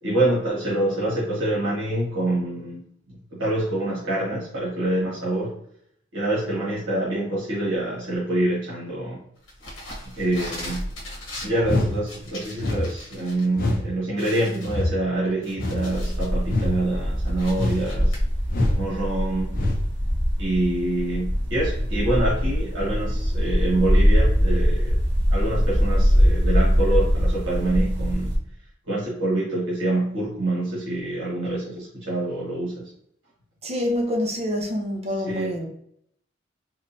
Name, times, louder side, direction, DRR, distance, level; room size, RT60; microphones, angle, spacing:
voice 1, 0.0-2.8 3.1-5.5 6.1-9.2 10.1-10.9 11.4-18.2 18.7-19.6 20.4-25.0 25.3-28.3 28.9-32.9 35.2-35.5, right 1 dB, 80° right, 1.4 m, -26 dB
sound 1, 9.5-13.4 13.8-13.9 14.2-16.4 16.8-18.2, left 1 dB, 80° left, 1.1 m, -38 dB
sound 2, 11.6-12.0 12.6-12.9 13.5-13.9 14.6-14.9 15.6-15.9 16.5-16.7 17.5-17.9 18.5-18.8 19.5-19.8, left 2 dB, 50° left, 0.7 m, -24 dB
sound 3, 15.9-28.4, equal, 60° right, 1.1 m, -22 dB
voice 2, 33.6-35.7, left 1 dB, 35° right, 0.8 m, -26 dB
3.7 x 3.1 x 2.7 m
head